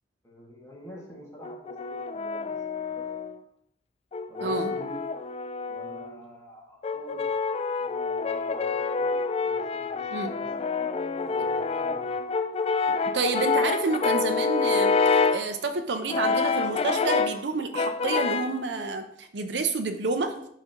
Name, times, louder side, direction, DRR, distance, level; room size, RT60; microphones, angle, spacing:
voice 1, 0.2-3.1 4.3-5.0 5.7-7.3 7.8-10.5 11.2-12.2, equal, 15° left, -4 dB, 1.9 m, -46 dB
Brass instrument, 1.4-3.4 4.1-6.2 6.8-15.5 16.1-17.4 17.8-18.6, left 4 dB, 35° left, 0.3 m, -27 dB
voice 2, 4.4-4.7 10.1-10.3 12.9-20.3, right 3 dB, 70° right, 7 dB, 0.6 m, -29 dB
11.5 x 4.1 x 2.9 m, 0.71 s
head